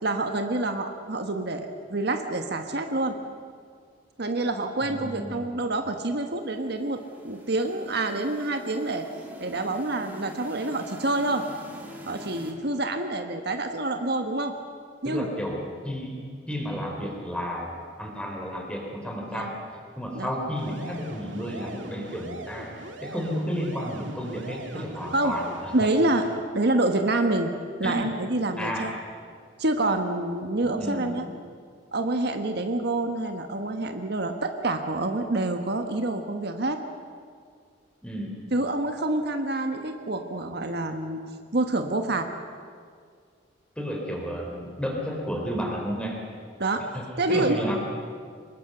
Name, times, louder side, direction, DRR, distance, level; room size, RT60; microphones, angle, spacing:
voice 1, 0.0-3.2 4.2-9.1 9.4-11.4 12.1-14.5 15.0-15.3 19.3-19.5 20.1-20.3 24.7-24.8 25.1-25.4 25.7-26.3 26.5-27.5 27.8-28.9 29.6-31.2 31.9-36.8 38.5-41.2 41.5-42.3 46.6-46.8 47.2-47.6, right 2 dB, 60° right, 6 dB, 1.4 m, -27 dB
voice 2, 4.8-5.6 15.0-16.2 16.5-19.5 20.0-22.7 23.0-25.9 27.8-28.1 28.6-28.9 30.6-31.3 38.0-38.4 43.8-46.2 46.9-47.8, equal, 5° left, 0 dB, 4.1 m, -32 dB
sound 1, 6.1-12.5, equal, 10° right, 3.1 m, -45 dB
sound 2, 20.6-26.4, right 2 dB, 85° right, 2.2 m, -41 dB
24.0 x 20.5 x 6.9 m, 2.1 s
head